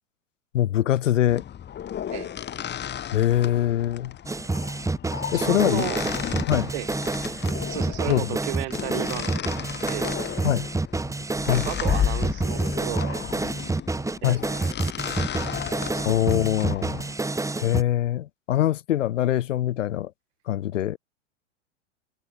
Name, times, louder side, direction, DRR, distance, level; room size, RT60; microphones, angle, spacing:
voice 1, 0.5-1.4 3.1-4.1 5.3-5.9 6.5-6.7 8.1-8.3 10.4-10.7 11.5-11.7 14.2-14.4 16.1-17.0 17.6-20.1 20.5-21.0, left 12 dB, 75° left, 1.8 m, -23 dB
sound 1, 1.3-17.1, left 10 dB, 25° left, 2.9 m, -33 dB
sound 2, 4.3-17.8, right 3 dB, 10° right, 2.5 m, -28 dB
voice 2, 5.2-6.4 6.7-6.9 7.7-9.5 9.8-10.2 11.5-13.2 14.2-14.8 15.0-15.1 15.9-16.0, right 23 dB, 60° right, 7.0 m, -34 dB
hypercardioid pair, 100°, 38 cm